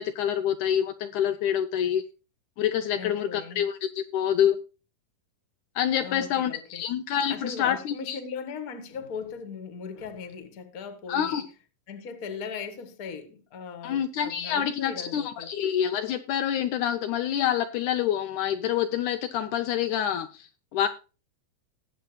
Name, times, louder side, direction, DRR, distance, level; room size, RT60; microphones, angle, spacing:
voice 1, 0.0-2.0 2.6-4.6 5.8-8.2 11.1-11.4 13.8-20.9, left 9 dB, 75° left, 2.0 m, -27 dB
voice 2, 3.0-3.6 6.0-6.8 7.3-11.4 11.9-15.5, left 6 dB, 35° left, 1.5 m, -38 dB
19.0 x 8.0 x 2.2 m
omnidirectional pair, 3.8 m